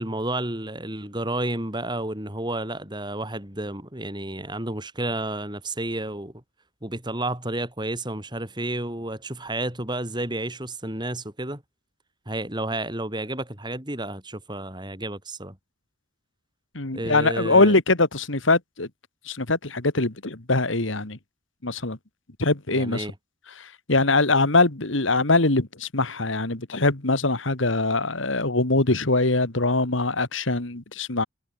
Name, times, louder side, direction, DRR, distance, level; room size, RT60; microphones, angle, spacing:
voice 1, 0.0-6.3 6.8-11.6 12.3-15.6 16.9-17.8 22.7-23.1, right 1 dB, 20° right, 4.5 m, -31 dB
voice 2, 16.7-18.9 19.3-21.2 21.6-22.0 22.4-23.1 23.6-31.2, left 2 dB, 70° left, 2.2 m, -22 dB
head